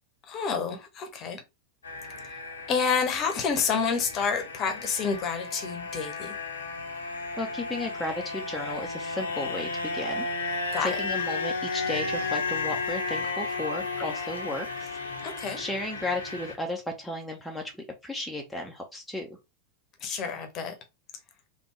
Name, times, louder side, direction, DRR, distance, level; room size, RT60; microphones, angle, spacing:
voice 1, 0.3-1.4 2.7-6.3 10.7-11.0 15.2-15.6 20.0-20.7, left 5 dB, 30° left, 0.8 m, -29 dB
sound 1, 1.8-16.5, left 3 dB, 70° left, 0.7 m, -33 dB
voice 2, 7.4-14.9 15.6-17.7 18.0-19.4, left 1 dB, 5° left, 0.6 m, -34 dB
3.4 x 2.2 x 3.1 m
figure-of-eight pair, 90°, 0 cm